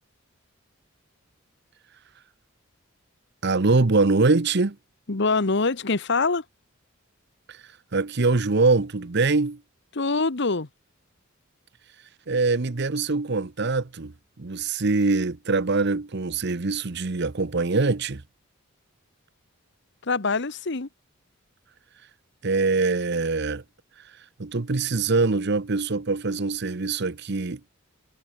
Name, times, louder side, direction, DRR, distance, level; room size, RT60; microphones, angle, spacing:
voice 1, 3.4-4.8 7.5-7.6 7.9-9.6 12.3-18.2 22.4-23.6 24.4-27.7, right 3 dB, 55° right, 0.9 m, -23 dB
voice 2, 5.1-6.4 9.9-10.7 20.0-20.9, left 3 dB, 55° left, 1.2 m, -24 dB
head